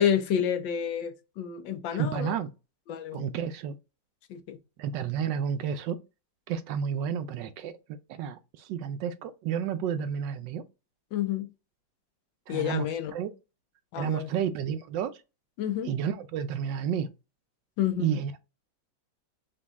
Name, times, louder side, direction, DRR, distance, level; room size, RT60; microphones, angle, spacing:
voice 1, 0.0-2.3 2.9-3.3 4.3-4.6 11.1-11.5 12.5-13.1 13.9-14.3 15.6-15.9 17.8-18.1, left 9 dB, 75° left, 1.4 m, -29 dB
voice 2, 1.9-2.5 3.1-3.7 4.8-6.0 6.5-7.8 8.1-10.6 12.5-13.3 14.0-15.1 15.8-17.1 18.0-18.4, right 8 dB, 75° right, 1.2 m, -31 dB
5.2 x 2.6 x 3.5 m
omnidirectional pair, 2.1 m